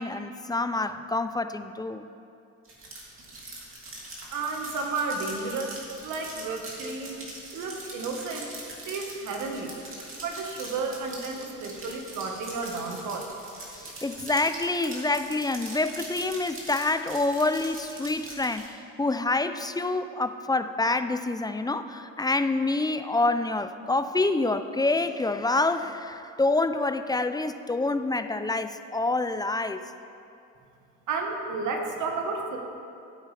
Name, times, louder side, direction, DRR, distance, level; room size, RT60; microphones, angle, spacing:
voice 1, 0.0-2.1 13.8-29.8, left 2 dB, 15° left, 10 dB, 0.4 m, -27 dB
sound 1, 2.6-18.7, right 2 dB, 45° right, 2.6 m, -42 dB
voice 2, 4.3-7.2 7.5-8.5 8.8-9.7 10.1-13.3 31.1-32.6, right 4 dB, 80° right, 2 dB, 1.4 m, -32 dB
15.0 x 8.3 x 3.3 m, 2.6 s
cardioid pair, 90°, 30 cm